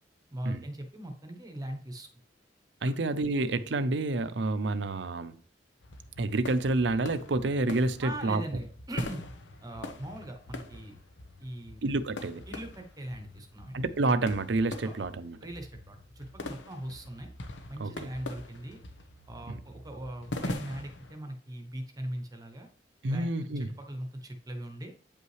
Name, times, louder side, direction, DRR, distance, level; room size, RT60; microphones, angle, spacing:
voice 1, 0.3-2.1 8.0-9.2 9.6-11.0 11.4-11.8 12.5-13.8 14.8-15.0 15.4-17.3 17.7-18.8 19.3-22.7 23.1-23.3 23.6-24.9, right 1 dB, 20° right, 0.9 m, -40 dB
voice 2, 2.8-5.4 6.2-8.4 11.8-12.4 13.7-15.4 17.8-18.1 19.5-19.6 23.0-23.7, right 2 dB, 70° right, 0.6 m, -29 dB
sound 1, 5.8-21.2, left 2 dB, 80° left, 1.0 m, -43 dB
8.6 x 5.6 x 3.2 m
head